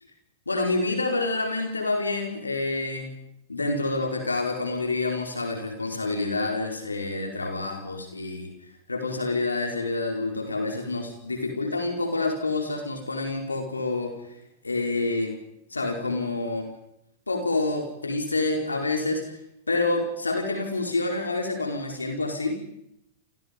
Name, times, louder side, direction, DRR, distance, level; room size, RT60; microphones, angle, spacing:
voice 1, 0.5-3.1 3.5-8.5 8.9-14.1 14.6-15.4 15.7-16.7 17.3-19.4 19.7-22.6, left 2 dB, 90° left, 3 dB, 4.5 m, -28 dB
28.5 x 28.5 x 5.3 m, 0.78 s
figure-of-eight pair, 100°, 0 cm